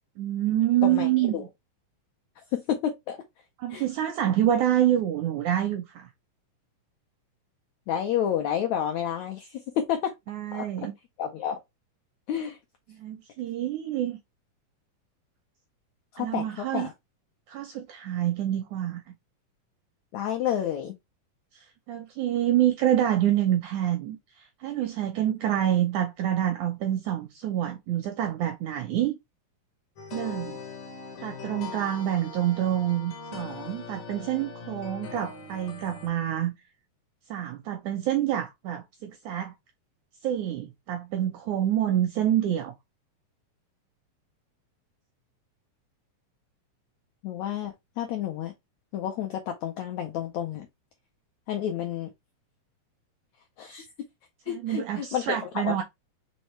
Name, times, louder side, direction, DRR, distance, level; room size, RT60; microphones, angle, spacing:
voice 1, 0.2-1.5 3.6-6.1 10.3-10.9 12.9-14.2 16.2-16.9 17.5-19.1 21.5-29.2 30.1-30.6 31.2-36.5 37.3-39.5 40.2-42.7 54.5-55.8, right 11 dB, 80° right, 1.7 m, -27 dB
voice 2, 0.8-1.5 2.5-3.2 3.7-3.8 7.9-10.1 10.5-10.6 11.2-11.6 12.3-12.6 16.1-16.9 20.1-20.9 47.2-48.5 48.9-50.7 51.5-52.1 53.6-53.8 54.5-55.8, left 9 dB, 90° left, 1.6 m, -30 dB
sound 1, 30.0-36.1, left 5 dB, 70° left, 1.3 m, -41 dB
5.4 x 3.2 x 3.1 m
omnidirectional pair, 4.0 m